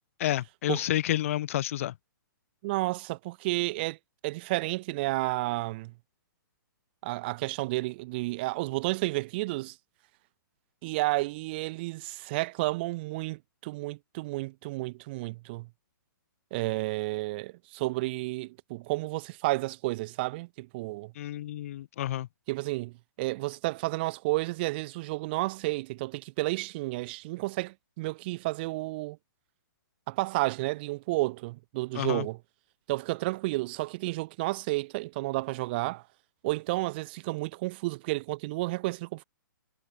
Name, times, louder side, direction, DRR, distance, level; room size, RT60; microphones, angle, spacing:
voice 1, 0.2-1.9 21.2-22.3 32.0-32.3, left 13 dB, 40° left, 0.4 m, -30 dB
voice 2, 2.6-4.0 4.2-5.9 7.0-9.8 10.8-15.7 16.5-21.1 22.5-29.2 30.1-32.4 32.9-36.0 36.4-39.2, right 21 dB, 30° right, 0.6 m, -31 dB
hypercardioid pair, 160°, 11 cm